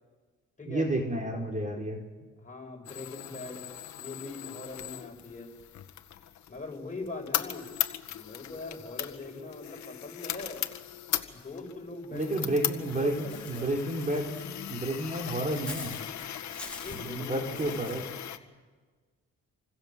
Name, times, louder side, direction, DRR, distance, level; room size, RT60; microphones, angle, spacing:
voice 1, 0.7-2.0 12.1-16.0 16.9-18.1, right 1 dB, 25° right, 2 dB, 4.5 m, -31 dB
voice 2, 2.4-3.6 4.0-5.5 6.5-7.7 8.1-10.6 11.3-13.8 16.8-18.0, left 3 dB, 25° left, 1 dB, 6.9 m, -42 dB
sound 1, 2.9-18.4, left 11 dB, 65° left, 1.8 m, -38 dB
Walk footsteps / Bird, 13.3-18.0, left 2 dB, 5° left, 4.7 m, -46 dB
28.5 x 25.0 x 7.6 m, 1.4 s
cardioid pair, 90°, 30 cm